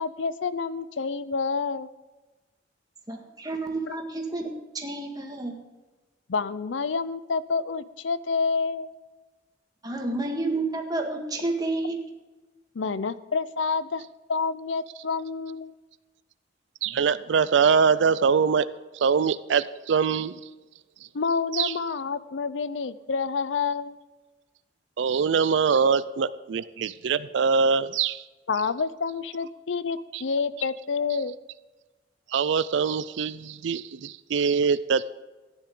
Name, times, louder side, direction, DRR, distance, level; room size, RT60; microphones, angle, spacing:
voice 1, 0.0-1.9 3.9-4.0 6.3-8.9 12.7-14.0 14.3-15.7 21.1-24.0 28.5-31.3, left 5 dB, 90° left, 16 dB, 0.6 m, -28 dB
voice 2, 3.1-5.6 9.8-12.0, right 2 dB, 20° right, 2 dB, 1.8 m, -30 dB
voice 3, 16.8-18.7 19.0-20.4 21.5-21.7 25.0-28.2 30.1-30.2 32.3-35.1, right 6 dB, 75° right, 16 dB, 0.4 m, -23 dB
15.0 x 10.0 x 3.8 m, 1.2 s
head